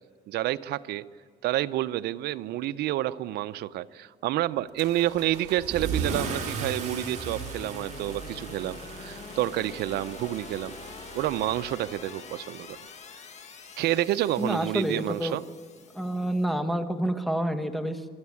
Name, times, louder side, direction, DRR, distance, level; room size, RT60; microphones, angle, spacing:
voice 1, 0.3-1.0 1.4-10.7 11.1-12.8 13.8-15.4, right 14 dB, 75° right, 14 dB, 0.6 m, -29 dB
Car / Engine starting / Accelerating revving vroom, 4.8-12.1, right 5 dB, 45° right, 3.5 m, -37 dB
sound 1, 6.2-16.5, left 5 dB, 40° left, 1.7 m, -44 dB
voice 2, 14.4-15.4 15.9-18.0, right 1 dB, ahead, 9 dB, 1.2 m, -28 dB
24.0 x 13.5 x 8.5 m, 2.1 s
cardioid pair, 110°, 17 cm